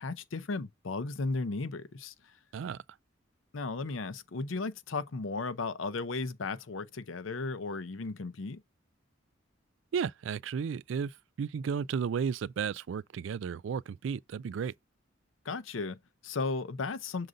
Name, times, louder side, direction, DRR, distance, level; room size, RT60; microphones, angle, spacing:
voice 1, 0.0-2.1 3.5-8.6 15.4-17.3, left 3 dB, 85° left, 0.7 m, -35 dB
voice 2, 9.9-14.7, right 6 dB, 70° right, 0.3 m, -33 dB
6.5 x 3.9 x 3.8 m
head